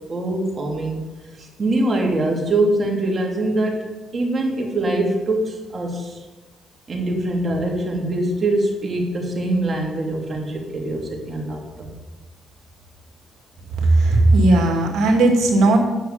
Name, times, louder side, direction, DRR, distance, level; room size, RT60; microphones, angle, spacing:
voice 1, 0.1-1.0 1.4-3.9 4.1-6.2 6.9-11.9, right 1 dB, 35° right, 0 dB, 3.2 m, -23 dB
voice 2, 13.8-15.8, right 2 dB, 80° right, 1 dB, 2.5 m, -16 dB
9.3 x 6.8 x 8.6 m, 1.1 s
cardioid pair, 90°, 0 cm